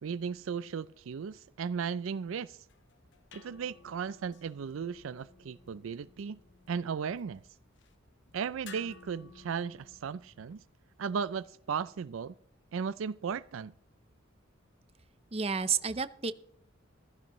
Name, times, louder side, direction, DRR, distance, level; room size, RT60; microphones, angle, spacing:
voice 1, 0.0-2.6 3.3-6.4 6.7-7.4 8.3-10.6 11.0-12.3 12.7-13.7, right 6 dB, 80° right, 0.4 m, -36 dB
sound 1, 2.6-10.5, left 5 dB, 65° left, 1.1 m, -56 dB
voice 2, 15.3-16.3, right 6 dB, 30° right, 0.7 m, -30 dB
15.5 x 14.5 x 3.1 m
head